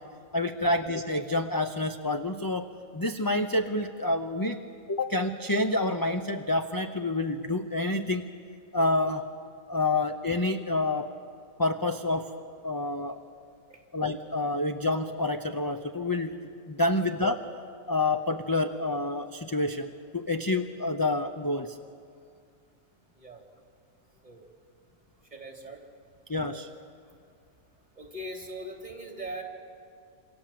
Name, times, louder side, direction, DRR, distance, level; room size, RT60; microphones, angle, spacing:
voice 1, 0.3-2.7 2.9-4.6 4.9-8.3 8.7-9.2 9.7-11.1 11.6-12.3 12.6-13.2 13.9-16.3 16.7-17.4 17.9-21.8 26.3-26.7, left 2 dB, 20° left, 6 dB, 0.7 m, -28 dB
voice 2, 25.3-25.8 28.0-29.4, right 1 dB, 30° right, 1 dB, 3.6 m, -40 dB
27.5 x 27.0 x 7.7 m, 2.4 s
omnidirectional pair, 1.5 m